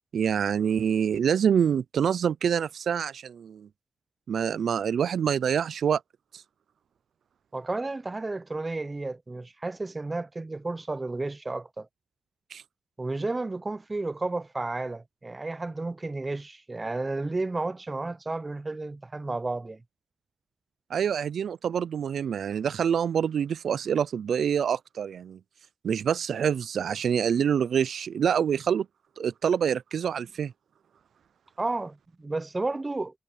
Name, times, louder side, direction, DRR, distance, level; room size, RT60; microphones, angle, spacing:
voice 1, 0.1-3.7 4.3-6.0 6.3-6.4 12.5-12.6 20.9-25.4 25.8-28.9 29.2-30.5, right 8 dB, 85° right, 0.3 m, -26 dB
voice 2, 7.5-11.9 13.0-19.8 31.6-33.2, right 2 dB, 30° right, 0.6 m, -32 dB
cardioid pair, 70°, 0 cm